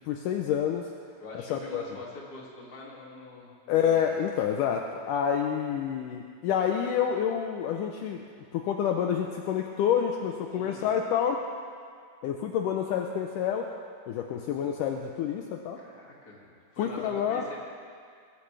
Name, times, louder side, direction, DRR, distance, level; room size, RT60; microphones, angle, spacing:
voice 1, 0.1-0.9 1.5-1.9 3.7-8.2 8.5-11.5 12.2-13.7 14.1-15.8 16.8-17.5, left 8 dB, 80° left, 3 dB, 1.9 m, -28 dB
voice 2, 1.2-4.2 10.5-10.9 15.8-17.6, left 2 dB, 30° left, -4 dB, 2.2 m, -44 dB
21.0 x 14.0 x 3.4 m, 2.2 s
omnidirectional pair, 4.4 m